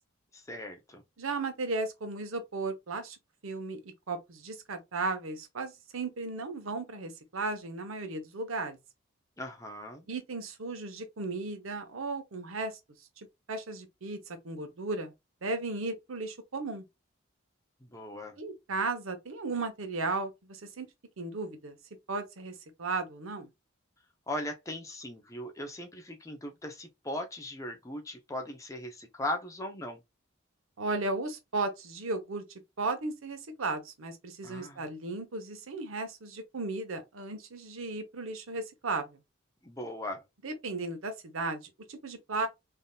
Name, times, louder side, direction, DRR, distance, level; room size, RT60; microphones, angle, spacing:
voice 1, 0.3-1.0 9.4-10.1 17.8-18.4 24.3-30.0 34.4-34.8 39.6-40.2, left 1 dB, 15° left, 0.5 m, -38 dB
voice 2, 1.2-3.2 3.4-8.8 10.1-12.8 13.2-15.1 15.4-16.8 18.4-20.9 21.2-21.8 22.1-23.5 30.8-32.4 32.8-39.2 40.4-42.5, right 3 dB, 80° right, 0.8 m, -35 dB
3.4 x 2.7 x 2.2 m
head